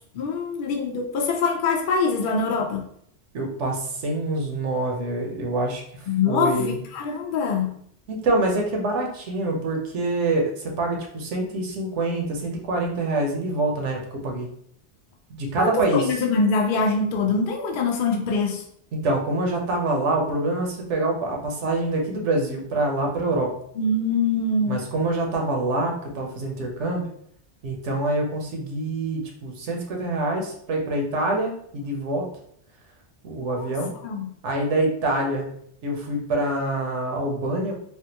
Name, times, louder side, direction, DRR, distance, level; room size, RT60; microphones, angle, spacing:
voice 1, 0.1-2.9 6.1-7.8 15.6-18.6 23.8-24.8 33.4-33.7 34.0-34.3, left 4 dB, 60° left, 2 dB, 0.6 m, -24 dB
voice 2, 3.3-6.8 8.2-14.5 15.3-16.1 18.9-23.5 24.7-27.0 27.6-32.3 33.2-33.9 34.4-35.5 35.8-37.7, right 2 dB, 80° right, 1 dB, 1.0 m, -25 dB
3.5 x 2.2 x 2.8 m, 0.67 s
omnidirectional pair, 1.2 m